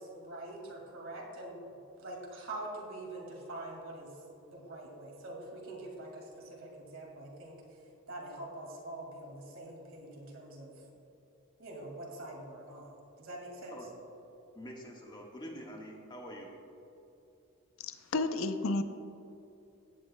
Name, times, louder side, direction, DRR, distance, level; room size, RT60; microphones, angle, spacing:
voice 1, 0.0-4.2 4.5-7.6 8.1-10.8 11.6-13.8, right 1 dB, 65° right, -1 dB, 2.1 m, -45 dB
voice 2, 14.5-16.5, equal, 20° left, -1 dB, 1.4 m, -46 dB
voice 3, 17.8-18.8, left 2 dB, 65° left, 9 dB, 0.6 m, -31 dB
16.5 x 9.7 x 2.2 m, 2.8 s
head